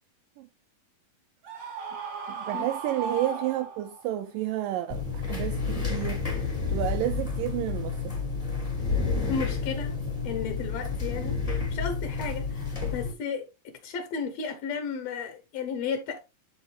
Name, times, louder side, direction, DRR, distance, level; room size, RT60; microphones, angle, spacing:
Screaming, 1.4-4.1, right 5 dB, 55° right, 2.7 m, -36 dB
voice 1, 2.3-6.2 6.7-8.1, right 13 dB, 80° right, 2.1 m, -31 dB
sound 1, 4.9-13.1, left 4 dB, 25° left, 0.7 m, -30 dB
voice 2, 9.3-9.9 10.2-11.4 11.7-16.2, left 6 dB, 75° left, 1.6 m, -33 dB
11.5 x 4.1 x 3.2 m
omnidirectional pair, 4.2 m